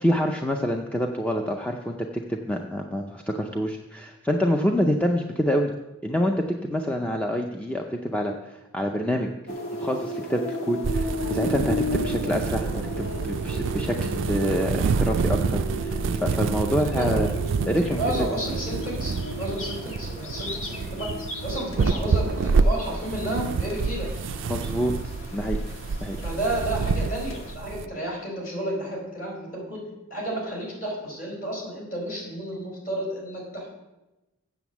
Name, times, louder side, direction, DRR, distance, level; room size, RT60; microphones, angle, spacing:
voice 1, 0.0-5.7 6.0-9.3 9.7-17.3 17.7-18.2 24.5-24.9 25.3-25.6 26.0-26.2, equal, 5° left, 2 dB, 0.5 m, -27 dB
sound 1, 9.5-27.5, left 1 dB, 75° left, 1.3 m, -35 dB
sound 2, 10.8-27.9, right 4 dB, 65° right, 0.3 m, -27 dB
voice 2, 18.0-21.1 21.4-24.1 26.2-29.8 30.1-33.8, right 1 dB, 40° left, -2 dB, 4.3 m, -31 dB
8.0 x 7.1 x 7.1 m, 1.0 s
head